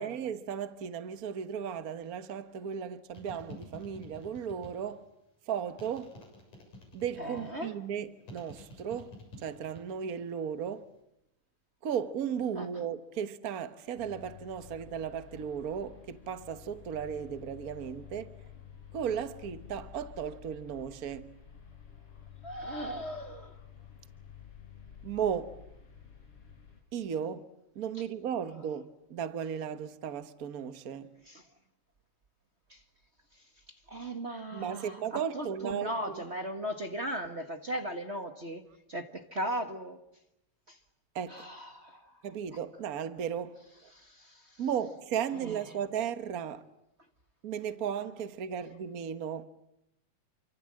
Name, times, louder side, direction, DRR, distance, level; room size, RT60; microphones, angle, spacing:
voice 1, 0.0-5.0 5.5-6.2 6.9-10.9 11.8-18.3 18.9-21.3 25.0-25.6 26.9-27.5 27.7-31.1 34.5-36.2 41.1-41.5 42.2-43.9 44.6-46.6 47.4-49.4, right 8 dB, 80° right, 0.8 m, -35 dB
sound 1, 3.1-5.0 5.8-7.6 8.3-10.0 10.3-10.8, left 2 dB, 90° left, 8.8 m, -49 dB
voice 2, 7.2-7.7 12.6-12.7 22.4-23.6 31.3-31.5 32.7-32.8 33.3-33.4 33.7-38.6 38.9-40.0 40.7-40.8 41.3-42.1 43.9-44.6 45.4-45.6, right 1 dB, 35° right, 1.0 m, -37 dB
sound 2, 14.0-26.8, left 8 dB, 45° left, 4.9 m, -51 dB
28.5 x 25.5 x 7.6 m
omnidirectional pair, 3.5 m